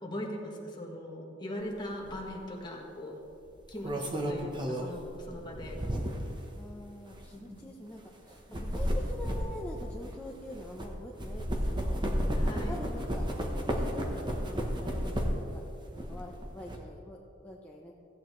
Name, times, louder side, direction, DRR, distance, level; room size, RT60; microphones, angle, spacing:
voice 1, 0.0-3.2 3.7-5.8 7.3-7.7 8.5-8.6 12.4-12.7, left 1 dB, 25° left, -1 dB, 1.5 m, -40 dB
sound 1, 2.0-2.2 3.5-6.4 7.1-7.2 8.3-10.9 11.2-15.5 15.9-16.8, equal, 25° right, 1.0 m, -32 dB
voice 2, 6.5-12.0 12.7-15.7 15.9-17.9, left 1 dB, 10° left, -3 dB, 0.7 m, -45 dB
16.0 x 8.7 x 3.2 m, 2.8 s
head